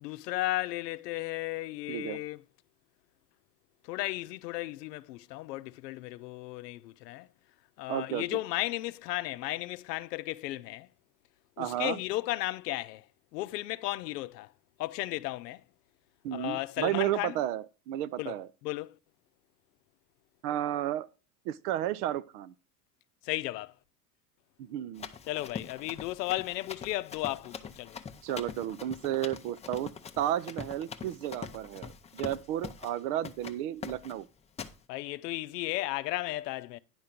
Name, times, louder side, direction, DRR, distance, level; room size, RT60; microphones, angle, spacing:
voice 1, 0.0-2.4 3.8-7.3 7.8-10.9 11.6-13.1 13.3-14.5 14.8-15.6 16.3-17.4 18.2-19.0 23.2-23.7 25.3-28.0 34.9-36.8, left 18 dB, 80° left, 0.6 m, -34 dB
voice 2, 1.9-2.2 7.9-8.2 11.6-12.0 16.2-18.5 20.4-21.1 21.5-22.5 24.6-25.1 28.2-34.3, right 12 dB, 70° right, 0.7 m, -32 dB
Run, 25.0-33.0 33.2-33.6 33.8-34.2 34.6-34.8, left 6 dB, 15° left, 0.5 m, -43 dB
10.5 x 3.8 x 5.8 m
supercardioid pair, 110°, 47 cm